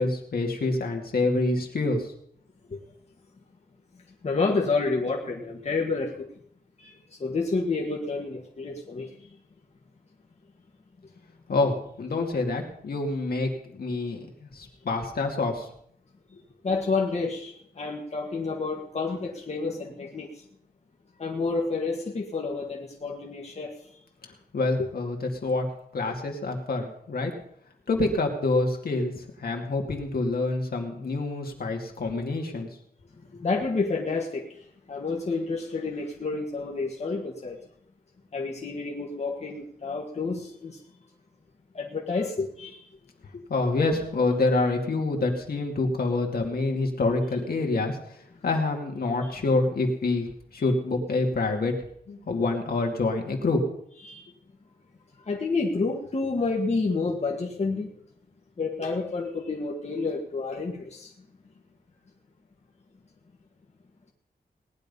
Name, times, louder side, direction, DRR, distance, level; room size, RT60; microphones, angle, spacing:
voice 1, 0.0-2.1 11.5-15.7 24.5-25.7 25.9-27.3 27.9-32.7 43.3-50.3 50.5-51.7 52.1-53.6, left 3 dB, 65° left, 2 dB, 2.4 m, -27 dB
voice 2, 4.2-6.3 6.8-9.1 16.6-20.3 21.2-23.8 24.8-24.9 33.4-34.5 34.9-37.6 38.3-40.8 41.7-42.8 49.2-49.3 54.0-54.3 55.3-57.9 58.6-61.1, left 3 dB, 40° left, -1 dB, 1.7 m, -29 dB
18.5 x 10.5 x 5.4 m, 0.68 s
wide cardioid pair, 175°, 16 cm